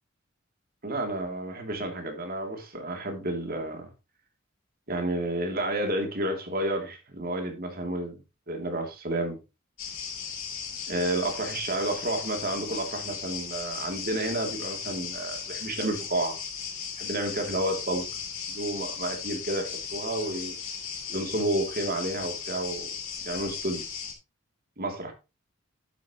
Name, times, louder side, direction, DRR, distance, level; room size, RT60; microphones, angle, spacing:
voice 1, 0.8-3.9 4.9-8.2 8.5-9.4 10.9-16.4 17.0-18.0 18.5-20.5 21.1-22.9 23.2-23.8 24.8-25.1, right 1 dB, 45° right, 2.9 m, -30 dB
sound 1, 9.8-24.1, left 6 dB, 85° left, 3.8 m, -36 dB
11.0 x 8.7 x 3.0 m
head